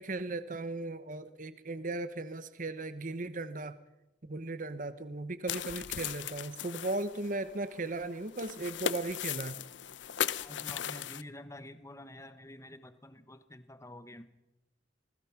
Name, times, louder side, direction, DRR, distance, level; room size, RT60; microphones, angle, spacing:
voice 1, 0.0-3.8 4.2-9.6, right 2 dB, 45° right, 13 dB, 1.0 m, -37 dB
sound 1, 5.5-11.2, left 9 dB, 80° left, 0.8 m, -37 dB
voice 2, 10.4-14.3, left 1 dB, 15° left, 11 dB, 1.1 m, -48 dB
26.5 x 19.5 x 5.9 m, 0.99 s
head